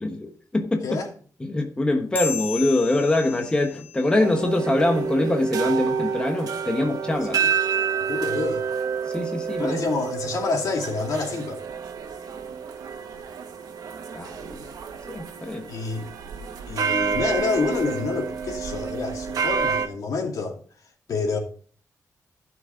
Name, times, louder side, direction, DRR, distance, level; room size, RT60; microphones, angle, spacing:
voice 1, 0.0-1.0 1.4-7.4 9.1-9.8 14.1-14.7 15.1-15.7, left 2 dB, 15° left, 1.1 m, -24 dB
sound 1, 2.1-5.0, left 5 dB, 30° left, 1.9 m, -35 dB
sound 2, 4.2-19.9, right 6 dB, 90° right, 1.4 m, -29 dB
voice 2, 8.1-8.7 9.6-11.6 15.7-16.1 16.7-20.6 21.1-21.4, left 4 dB, 70° left, 2.7 m, -27 dB
15.0 x 6.1 x 3.8 m
wide cardioid pair, 170°, 6 cm